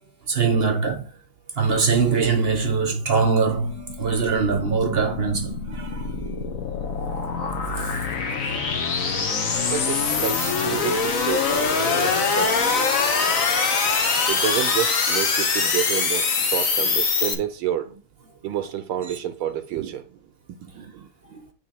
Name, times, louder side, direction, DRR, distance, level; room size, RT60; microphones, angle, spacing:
voice 1, 0.3-1.1 1.6-6.1 7.7-7.9 10.4-10.5 21.3-21.4, right 5 dB, 40° right, 0.9 m, -22 dB
sound 1, 3.5-17.3, left 5 dB, 45° left, 1.2 m, -24 dB
voice 2, 9.7-12.9 14.2-17.9 18.4-20.2 20.6-21.4, right 10 dB, 80° right, 1.4 m, -30 dB
9.3 x 3.4 x 4.3 m
omnidirectional pair, 2.3 m